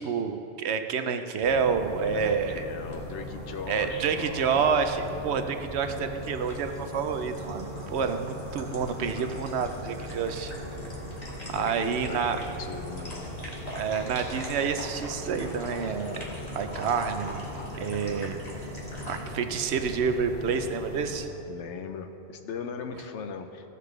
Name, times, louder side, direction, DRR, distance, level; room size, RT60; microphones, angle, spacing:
voice 1, 0.0-2.6 3.7-7.7 7.9-10.5 11.5-12.4 13.7-16.3 16.5-17.4 17.8-18.7 19.0-21.3, right 6 dB, 75° right, 8 dB, 0.9 m, -28 dB
sound 1, 1.4-21.2, left 1 dB, 35° right, 1.8 m, -39 dB
voice 2, 2.0-4.7 11.5-13.3 21.5-23.7, left 6 dB, 90° left, 6 dB, 1.0 m, -39 dB
sound 2, 2.9-20.5, left 1 dB, 35° left, 1.6 m, -45 dB
15.0 x 6.7 x 3.2 m, 2.8 s
omnidirectional pair, 1.2 m